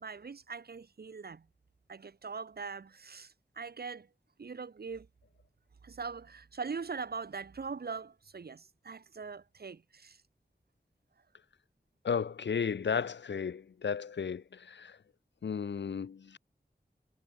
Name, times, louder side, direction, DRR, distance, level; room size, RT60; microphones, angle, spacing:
voice 1, 0.0-1.5 1.9-4.1 4.4-5.1 5.8-10.2, right 5 dB, 60° right, 0.6 m, -41 dB
voice 2, 12.0-15.0 15.4-16.4, left 6 dB, 85° left, 0.5 m, -34 dB
wide cardioid pair, 50°, 18 cm